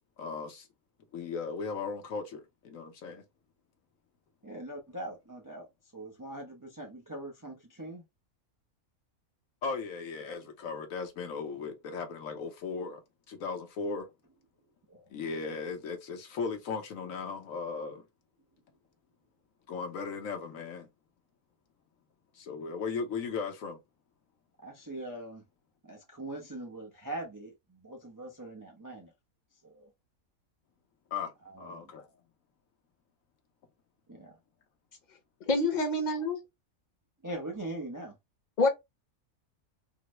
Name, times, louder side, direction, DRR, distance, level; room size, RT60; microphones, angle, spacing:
voice 1, 0.2-0.7 1.1-3.2 9.6-13.0 13.3-14.1 15.1-18.0 19.7-20.9 22.3-23.8 31.1-31.3 31.6-32.1, left 5 dB, 70° left, 1.2 m, -37 dB
voice 2, 4.4-5.7 5.9-8.0 14.9-15.1 24.6-25.4 25.8-29.1 29.6-29.9 31.4-31.9 34.1-34.4 37.2-38.2, right 1 dB, 30° right, 0.3 m, -42 dB
voice 3, 35.5-36.4 38.6-38.7, left 2 dB, 35° left, 0.9 m, -26 dB
3.8 x 2.0 x 3.0 m
omnidirectional pair, 1.5 m